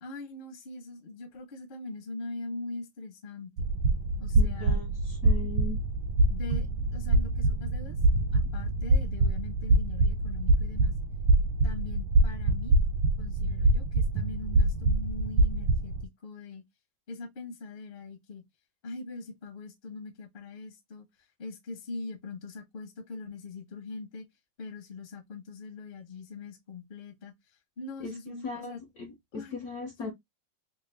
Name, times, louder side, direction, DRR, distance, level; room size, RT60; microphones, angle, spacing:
voice 1, 0.0-3.7 4.2-4.8 6.3-6.7 6.9-8.0 8.3-10.9 11.6-12.7 13.2-15.9 16.2-16.6 17.1-18.4 18.8-21.1 21.4-24.3 24.6-27.3 27.8-28.8 29.3-29.6 30.0-30.1, left 3 dB, 45° left, 0.7 m, -41 dB
sound 1, 3.6-16.1, right 2 dB, 80° right, 1.5 m, -25 dB
voice 2, 4.3-5.8 28.0-30.1, left 4 dB, 65° left, 0.9 m, -39 dB
3.7 x 2.2 x 3.2 m
omnidirectional pair, 2.4 m